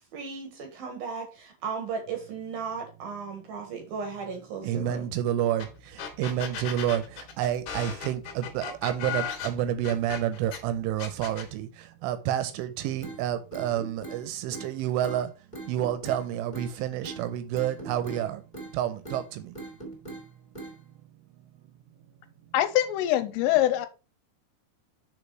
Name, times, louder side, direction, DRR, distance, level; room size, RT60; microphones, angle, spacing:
voice 1, 0.0-5.0, right 5 dB, 65° right, 2.6 m, -36 dB
voice 2, 4.6-15.3 15.7-18.4 18.7-19.5, right 11 dB, 80° right, 3.0 m, -29 dB
sound 1, 5.6-5.7 6.0-10.6 11.0-11.5, left 7 dB, 65° left, 3.1 m, -36 dB
sound 2, 13.0-13.2 13.5-14.2 14.5-14.7 15.0-15.2 15.5-16.2 16.5-16.7 17.0-17.2 17.5-18.2 18.5-18.7 19.0-19.2 19.5-20.2 20.5-20.7, right 2 dB, 15° left, 2.1 m, -40 dB
voice 3, 22.5-23.9, left 13 dB, 85° left, 3.2 m, -23 dB
6.7 x 5.2 x 4.6 m
omnidirectional pair, 5.8 m